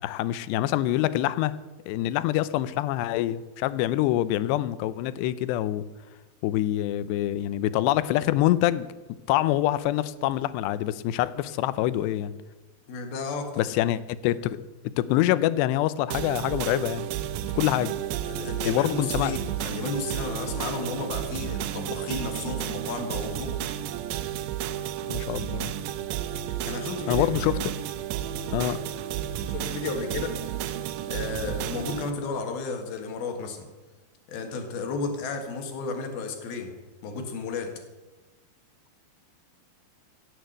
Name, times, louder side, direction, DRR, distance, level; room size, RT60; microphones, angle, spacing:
voice 1, 0.0-1.6 1.9-5.9 6.4-8.9 9.3-12.3 13.6-14.6 15.0-17.1 17.6-18.0 18.7-19.3 25.1-25.7 27.1-27.5 28.5-28.8, left 14 dB, 85° left, 16 dB, 2.8 m, -25 dB
voice 2, 12.9-13.6 18.2-23.6 26.7-27.6 28.4-28.7 29.5-30.5 31.1-33.7 34.3-36.8 37.0-37.8, left 4 dB, 65° left, 5 dB, 3.4 m, -33 dB
sound 1, 16.1-32.1, right 11 dB, 90° right, 2.9 m, -32 dB
16.5 x 8.4 x 7.9 m, 1.2 s
omnidirectional pair, 4.8 m